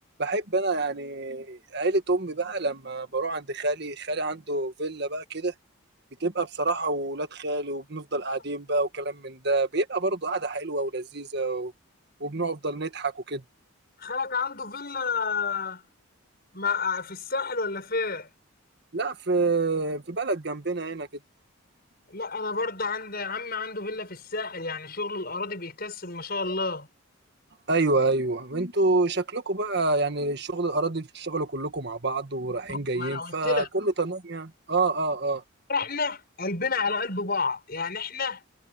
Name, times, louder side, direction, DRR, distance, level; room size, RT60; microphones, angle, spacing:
voice 1, 0.2-5.5 6.2-11.7 12.2-13.4 18.9-21.1 27.7-35.4, right 2 dB, 50° right, 1.7 m, -27 dB
voice 2, 14.0-15.8 16.5-18.3 22.1-26.9 32.7-33.7 35.7-38.4, left 4 dB, 45° left, 7.0 m, -30 dB
head